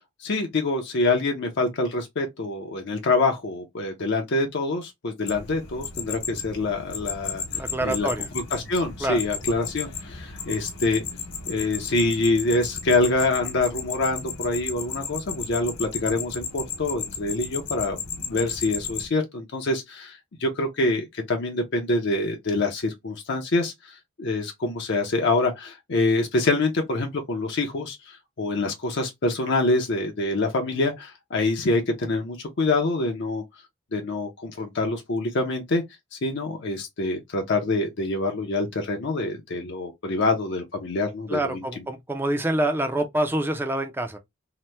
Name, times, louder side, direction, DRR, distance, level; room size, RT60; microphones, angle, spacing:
voice 1, 0.2-7.4 7.8-8.1 8.3-11.0 11.5-33.4 33.9-35.8 36.1-41.8, left 2 dB, 55° left, 0.5 m, -26 dB
sound 1, 5.3-19.1, left 6 dB, 80° left, 0.9 m, -34 dB
voice 2, 7.5-8.3 9.0-9.2 41.3-44.2, right 1 dB, 10° right, 0.4 m, -26 dB
2.9 x 2.1 x 3.1 m
head